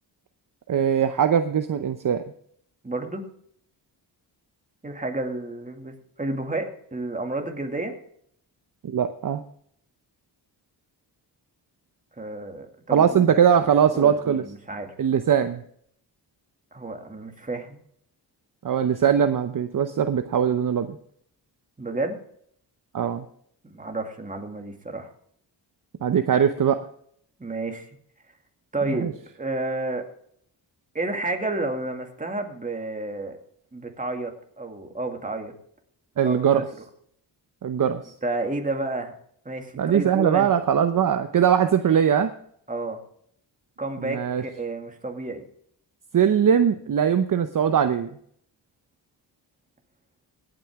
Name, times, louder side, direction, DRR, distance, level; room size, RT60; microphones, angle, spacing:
voice 1, 0.7-2.2 8.8-9.4 12.9-14.4 15.0-15.6 18.6-21.0 22.9-23.2 26.0-26.8 28.8-29.1 36.2-36.6 37.6-38.1 39.8-42.3 44.0-44.4 46.1-48.1, right 8 dB, 50° right, 8 dB, 0.8 m, -21 dB
voice 2, 2.8-3.2 4.8-7.9 12.2-13.3 13.9-14.9 16.7-17.8 21.8-22.2 23.7-25.1 27.4-27.9 28.7-30.1 30.9-33.4 33.7-34.3 34.6-35.5 36.2-36.6 38.2-39.1 39.5-40.5 42.7-43.0 43.8-45.5, right 2 dB, 20° right, 3 dB, 2.2 m, -31 dB
17.5 x 9.1 x 3.6 m, 0.65 s
cardioid pair, 90°, 43 cm